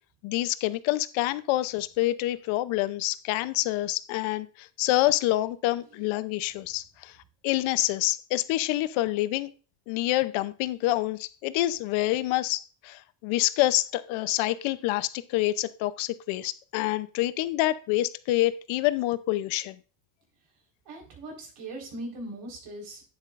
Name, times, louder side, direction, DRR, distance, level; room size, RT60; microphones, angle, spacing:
voice 1, 0.2-7.1 7.4-9.5 9.9-19.8, left 16 dB, 75° left, 0.7 m, -27 dB
voice 2, 20.8-23.0, right 1 dB, 55° right, 4.4 m, -40 dB
11.5 x 9.7 x 2.5 m
cardioid pair, 165°, 48 cm